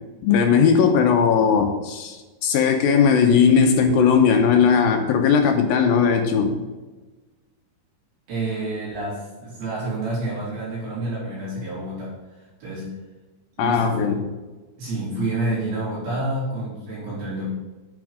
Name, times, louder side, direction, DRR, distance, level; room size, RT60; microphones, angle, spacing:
voice 1, 0.2-6.5 13.6-14.2, left 6 dB, 75° left, 5 dB, 2.3 m, -18 dB
voice 2, 8.3-12.9 13.6-14.2 14.8-17.4, right 2 dB, 60° right, -8 dB, 6.0 m, -29 dB
9.6 x 8.3 x 5.0 m, 1.2 s
omnidirectional pair, 5.0 m